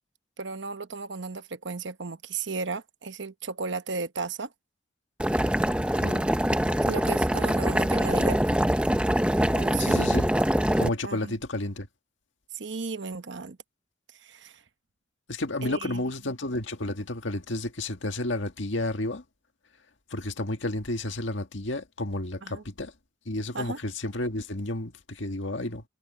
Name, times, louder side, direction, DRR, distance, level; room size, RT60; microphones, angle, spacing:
voice 1, 0.4-4.5 6.9-8.4 9.5-10.0 11.0-11.3 12.5-13.6 14.2-14.6 15.6-16.0 22.4-22.6 23.5-23.8, right 4 dB, 75° right, 1.0 m, -34 dB
Boiling, 5.2-10.9, equal, 5° right, 0.8 m, -24 dB
voice 2, 6.0-6.3 9.8-10.3 10.8-11.9 15.3-19.2 20.1-22.9 23.3-25.8, left 1 dB, 80° left, 1.8 m, -31 dB
head